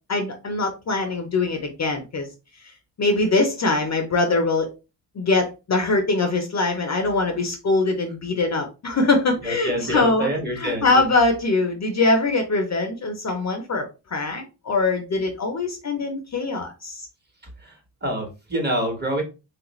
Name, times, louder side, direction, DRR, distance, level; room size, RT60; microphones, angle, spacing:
voice 1, 0.1-2.3 3.0-4.7 5.2-10.3 10.6-17.1, left 3 dB, 35° left, 4 dB, 0.7 m, -22 dB
voice 2, 9.4-11.0 17.6-17.7 18.0-19.2, right 1 dB, 20° right, 2 dB, 1.2 m, -26 dB
3.3 x 2.4 x 3.0 m, 0.29 s
cardioid pair, 85°, 45 cm